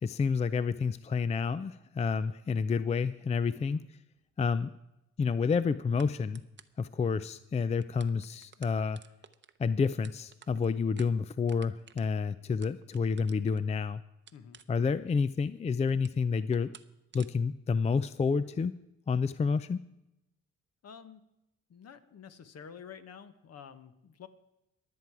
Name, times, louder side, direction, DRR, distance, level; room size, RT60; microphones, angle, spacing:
voice 1, 0.0-3.8 4.4-4.7 5.2-6.4 6.8-9.0 9.6-14.0 14.7-16.7 17.1-18.7 19.1-19.8, left 5 dB, 20° left, 15 dB, 0.4 m, -29 dB
voice 2, 3.5-3.9 14.3-14.6 20.8-21.2 21.7-24.3, left 7 dB, 55° left, 10 dB, 1.3 m, -49 dB
sound 1, 4.2-4.3 6.0-6.1 6.3-6.8 7.4-7.5 7.7-13.7 14.3-15.1 15.4-16.2 16.5-16.9 17.1-17.3, right 7 dB, 40° right, 0.8 m, -54 dB
22.0 x 7.7 x 4.8 m, 0.89 s
cardioid pair, 90°, 30 cm